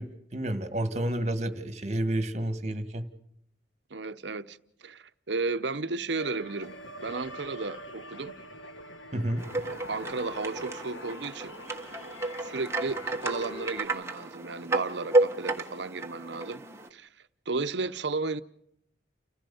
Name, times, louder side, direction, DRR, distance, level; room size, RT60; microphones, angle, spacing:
voice 1, 0.0-3.1 9.1-9.4, right 1 dB, 35° right, 1.8 m, -30 dB
voice 2, 3.9-6.7 7.0-8.4 9.9-12.0 12.4-16.6 16.9-17.1 17.5-18.4, right 3 dB, 70° right, 0.9 m, -34 dB
sound 1, 6.2-13.8, left 1 dB, 85° left, 1.5 m, -44 dB
sound 2, 9.4-16.9, right 2 dB, 15° right, 1.3 m, -31 dB
30.0 x 15.0 x 7.0 m
head